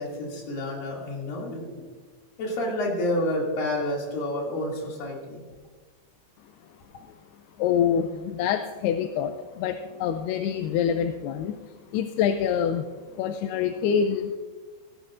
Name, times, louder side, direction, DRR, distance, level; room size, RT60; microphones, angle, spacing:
voice 1, 0.0-1.9 2.4-5.4, left 1 dB, 60° left, -2 dB, 4.0 m, -29 dB
voice 2, 7.6-11.6 11.9-12.9 13.1-14.4, left 8 dB, 80° left, 8 dB, 2.5 m, -26 dB
17.0 x 16.0 x 2.5 m, 1.4 s
omnidirectional pair, 4.8 m